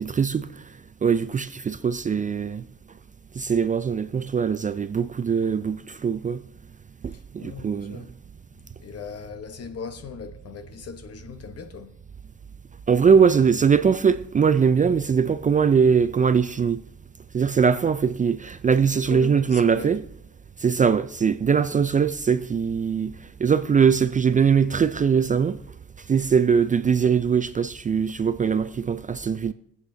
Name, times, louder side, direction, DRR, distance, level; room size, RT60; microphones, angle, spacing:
voice 1, 0.0-2.7 3.3-6.4 7.0-8.0 12.9-16.8 17.3-20.0 20.6-25.6 26.0-29.5, right 6 dB, 25° right, 0.4 m, -21 dB
voice 2, 7.1-8.1 8.8-12.0 19.1-20.0, left 6 dB, 55° left, 1.1 m, -38 dB
23.5 x 8.1 x 2.7 m
cardioid pair, 90°, 30 cm